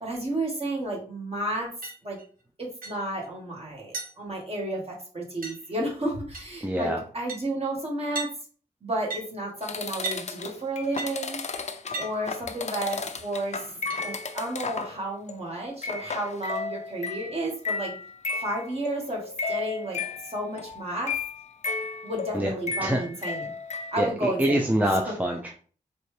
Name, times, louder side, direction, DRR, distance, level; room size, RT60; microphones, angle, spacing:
voice 1, 0.0-1.7 2.0-2.2 2.6-8.3 8.8-13.7 14.0-17.9 18.3-21.1 22.0-23.5 23.9-24.7 25.0-25.1, right 1 dB, 40° right, -2 dB, 1.7 m, -32 dB
sound 1, 1.8-2.3 2.8-3.0 3.2-3.3 3.9-4.1 5.4-5.8 6.3-6.6 6.9-7.0 7.3-7.4 8.2-8.3 9.1-9.2 10.0-10.2 11.0-11.1 11.9-12.1 12.9-13.0 13.9-14.0, right 3 dB, 75° right, 1.0 m, -34 dB
voice 2, 6.6-7.0 22.3-22.5 22.8-23.0 24.0-25.5, right 1 dB, 10° right, 1 dB, 0.5 m, -25 dB
sound 2, 9.6-15.0 15.3-15.5 15.8-24.1, left 4 dB, 50° left, 0.5 m, -34 dB
4.1 x 3.3 x 3.3 m, 0.42 s
wide cardioid pair, 100°, 15 cm